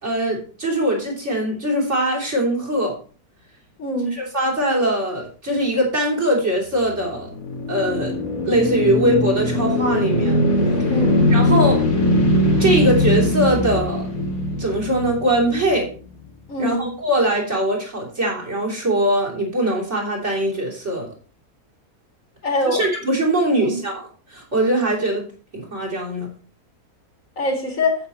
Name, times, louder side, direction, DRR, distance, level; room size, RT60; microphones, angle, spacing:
voice 1, 0.0-3.0 4.1-7.3 7.7-8.2 8.4-10.4 11.3-11.8 12.6-14.1 14.6-15.9 16.6-21.1 22.6-25.3 25.5-26.3, right 1 dB, 45° right, 3.5 m, -21 dB
voice 2, 3.8-4.2 10.9-11.3 16.5-16.9 22.4-22.8 23.6-23.8 27.4-28.0, left 1 dB, 55° left, 2.9 m, -23 dB
sound 1, 6.9-16.2, left 1 dB, 85° left, 2.8 m, -21 dB
8.8 x 8.3 x 4.3 m
omnidirectional pair, 1.7 m